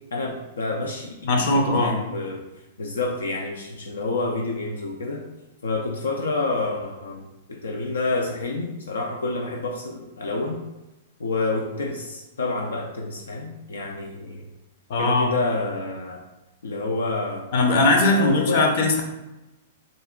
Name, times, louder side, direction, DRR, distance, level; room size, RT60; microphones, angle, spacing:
voice 1, 0.1-2.4 2.8-5.2 5.6-10.6 11.2-14.4 15.0-16.2 16.6-17.5 18.1-18.7, left 3 dB, 90° left, 1 dB, 0.4 m, -28 dB
voice 2, 1.2-1.9 14.9-15.3 17.5-19.0, left 2 dB, 55° left, 3 dB, 0.7 m, -19 dB
3.8 x 2.4 x 3.7 m, 1.0 s
hypercardioid pair, 125°, 0 cm